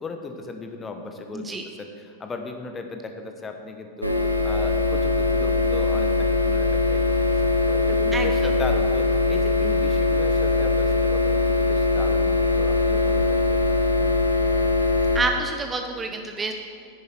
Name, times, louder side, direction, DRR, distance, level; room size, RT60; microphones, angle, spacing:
voice 1, 0.0-4.1 4.4-14.2, left 3 dB, 15° left, 5 dB, 1.1 m, -37 dB
sound 1, 4.0-15.2, left 3 dB, 90° right, 1.0 m, -21 dB
voice 2, 15.1-16.5, right 3 dB, 15° right, 5 dB, 0.7 m, -27 dB
10.5 x 9.9 x 4.6 m, 2.3 s
figure-of-eight pair, 90°, 0 cm